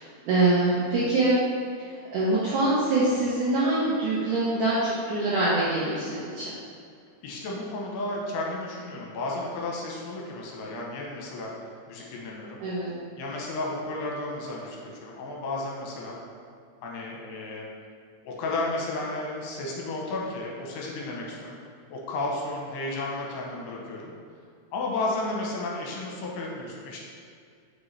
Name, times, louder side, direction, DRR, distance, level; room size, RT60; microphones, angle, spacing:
voice 1, 0.3-1.4 1.9-6.6 12.6-12.9, right 2 dB, 75° right, -8 dB, 1.9 m, -24 dB
voice 2, 7.2-11.5 11.9-12.6 13.2-16.2 16.8-17.7 18.2-21.6 21.9-24.1 24.7-27.0, left 2 dB, 80° left, -2 dB, 2.8 m, -33 dB
6.1 x 5.1 x 3.2 m, 2.3 s
omnidirectional pair, 4.8 m